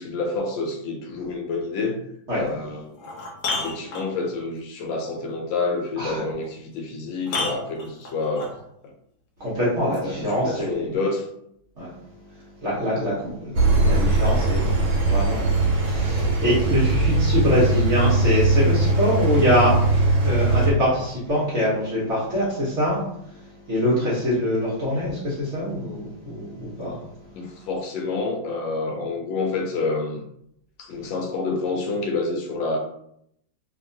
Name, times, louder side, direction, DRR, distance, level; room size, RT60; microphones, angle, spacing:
voice 1, 0.0-2.0 2.3-2.9 3.5-8.5 10.0-11.3 27.4-30.2 30.8-32.8, left 3 dB, 80° left, 2 dB, 1.3 m, -28 dB
sound 1, 2.4-2.5 2.9-4.4 6.4-6.5 7.2-8.6 9.9-10.0, left 3 dB, 60° left, 1.0 m, -30 dB
voice 2, 9.4-10.9 11.8-11.9 12.6-19.8 20.2-27.0 27.4-27.5, equal, 50° right, -7 dB, 1.0 m, -24 dB
Engine, 13.5-20.7, right 2 dB, 75° right, 1.5 m, -20 dB
2.9 x 2.8 x 2.6 m, 0.74 s
omnidirectional pair, 2.1 m